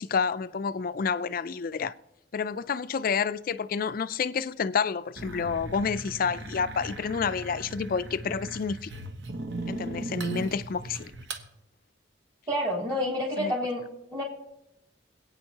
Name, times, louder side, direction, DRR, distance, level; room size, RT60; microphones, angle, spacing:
voice 1, 0.0-1.9 2.3-8.9 9.7-11.1 13.4-13.5, left 6 dB, 50° left, 0.4 m, -29 dB
sound 1, 5.2-11.5, right 2 dB, 70° right, 1.1 m, -37 dB
voice 2, 12.5-13.8 14.1-14.2, equal, 30° right, 3.3 m, -28 dB
25.5 x 8.8 x 2.9 m
head